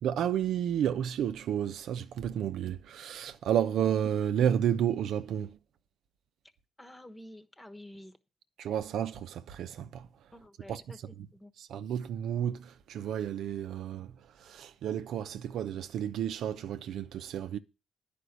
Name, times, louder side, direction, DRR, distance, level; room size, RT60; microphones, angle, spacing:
voice 1, 0.0-5.6 8.6-10.1 10.7-10.8 11.6-14.1 14.4-17.6, right 9 dB, 75° right, 0.7 m, -31 dB
voice 2, 6.8-8.2 10.3-11.5, left 1 dB, 15° left, 1.2 m, -50 dB
10.0 x 5.2 x 8.1 m
cardioid pair, 90°, 0 cm